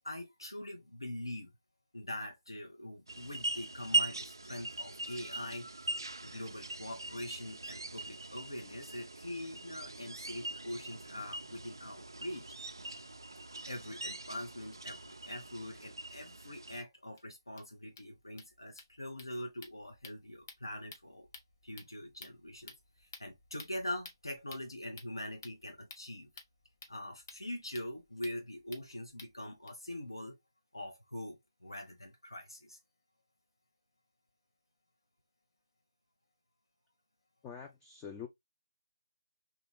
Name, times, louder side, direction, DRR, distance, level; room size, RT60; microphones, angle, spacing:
voice 1, 0.0-1.5 1.9-5.7 6.2-12.5 13.7-21.3 21.6-26.3 26.9-30.4 30.7-32.8, left 1 dB, 80° left, 0.8 m, -43 dB
sound 1, 3.1-16.8, right 2 dB, 70° right, 0.4 m, -40 dB
sound 2, 16.4-16.5 16.8-16.9 17.2-17.3 17.5-29.7, left 4 dB, 40° left, 0.7 m, -55 dB
voice 2, 37.4-38.3, left 7 dB, 10° left, 0.3 m, -45 dB
2.9 x 2.4 x 3.2 m
figure-of-eight pair, 150°, 2 cm